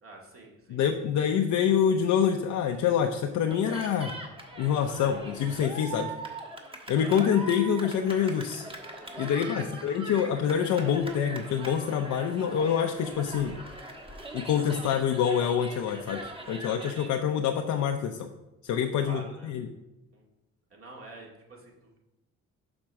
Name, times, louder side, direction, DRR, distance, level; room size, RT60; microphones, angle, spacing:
voice 1, 0.0-0.9 9.6-9.7 19.0-19.5 20.1-20.2 20.7-22.0, right 3 dB, 45° right, -1 dB, 2.1 m, -47 dB
voice 2, 0.7-4.1 4.6-6.1 6.9-8.6 9.2-13.6 14.3-18.3 18.6-19.7, left 8 dB, 75° left, 3 dB, 0.7 m, -26 dB
Cheering, 3.5-17.2, right 2 dB, 20° right, 1.4 m, -41 dB
6.0 x 4.4 x 6.3 m, 0.97 s
cardioid pair, 90°, 30 cm